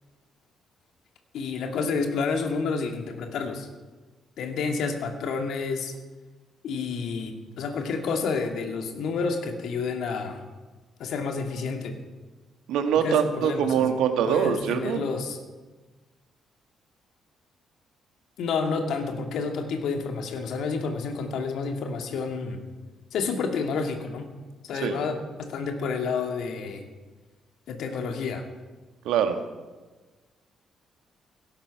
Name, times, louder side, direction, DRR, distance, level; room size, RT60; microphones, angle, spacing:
voice 1, 1.3-3.7 4.4-5.9 6.6-10.4 11.0-12.0 13.0-13.9 14.2-15.4 18.4-22.6 23.1-24.3 24.6-26.8 27.7-28.5, left 4 dB, 65° left, 4 dB, 2.2 m, -29 dB
voice 2, 12.7-15.0 24.8-25.0 29.1-29.4, right 8 dB, 65° right, 6 dB, 1.7 m, -23 dB
17.5 x 16.5 x 4.8 m, 1.3 s
figure-of-eight pair, 45°, 0 cm